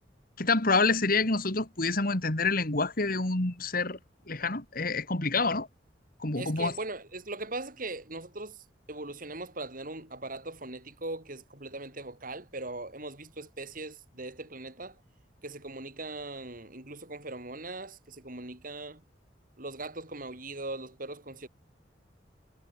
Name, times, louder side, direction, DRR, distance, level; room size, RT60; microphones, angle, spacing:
voice 1, 0.4-4.0 4.3-5.7 6.2-6.7, left 3 dB, 50° left, 2.8 m, -27 dB
voice 2, 6.4-15.0 15.4-19.0 19.6-21.5, right 2 dB, 50° right, 6.5 m, -40 dB
head